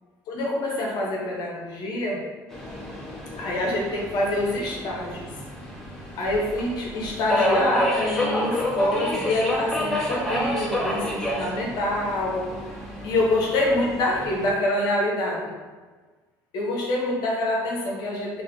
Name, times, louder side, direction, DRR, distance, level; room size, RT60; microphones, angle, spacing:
voice 1, 0.3-2.2 3.4-5.3 6.2-12.5 13.0-15.5 16.5-18.4, left 1 dB, 65° left, -2 dB, 0.9 m, -26 dB
Subway metro underground, 2.5-14.5, left 1 dB, 5° left, 1.1 m, -30 dB
4.7 x 2.5 x 2.7 m, 1.4 s
supercardioid pair, 85°, 7 cm